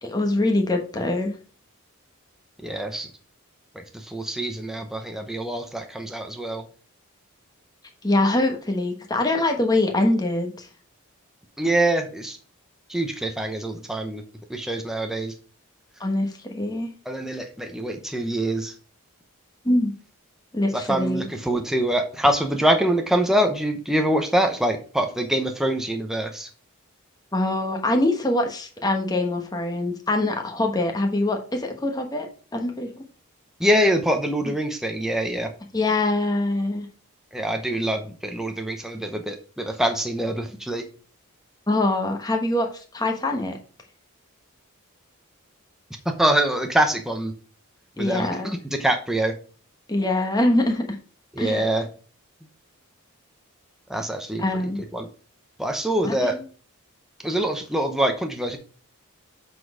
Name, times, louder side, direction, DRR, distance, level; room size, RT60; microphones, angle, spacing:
voice 1, 0.0-1.4 8.0-10.7 16.0-16.9 19.6-19.9 20.5-21.2 27.3-32.3 32.5-33.1 35.7-36.9 41.7-42.7 42.9-43.6 48.0-48.5 49.9-50.8 51.4-51.6 54.4-54.8 56.0-56.4, left 2 dB, 15° left, 3 dB, 1.1 m, -23 dB
voice 2, 2.6-3.1 3.7-6.6 11.6-12.4 12.9-14.2 14.5-15.3 17.1-18.7 20.7-26.5 33.6-35.5 37.3-40.8 46.2-47.3 48.0-49.3 51.4-51.9 53.9-54.4 54.9-55.1 55.6-56.4 57.2-58.6, right 1 dB, ahead, 4 dB, 0.7 m, -24 dB
7.5 x 4.2 x 4.8 m, 0.39 s
head